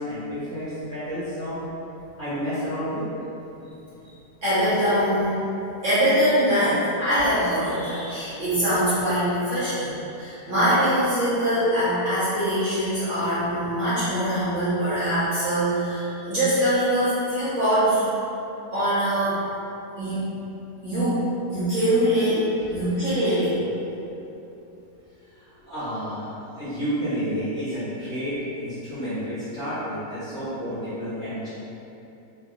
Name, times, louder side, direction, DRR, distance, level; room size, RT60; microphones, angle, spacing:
voice 1, 0.0-1.6 2.2-3.0 22.7-22.8 25.3-31.5, equal, 40° left, -17 dB, 1.5 m, -30 dB
voice 2, 4.4-5.4 5.8-18.1 18.7-19.4 20.0-20.2 20.8-23.6, equal, 55° right, -13 dB, 0.9 m, -23 dB
3.8 x 2.6 x 2.4 m, 2.9 s
omnidirectional pair, 2.0 m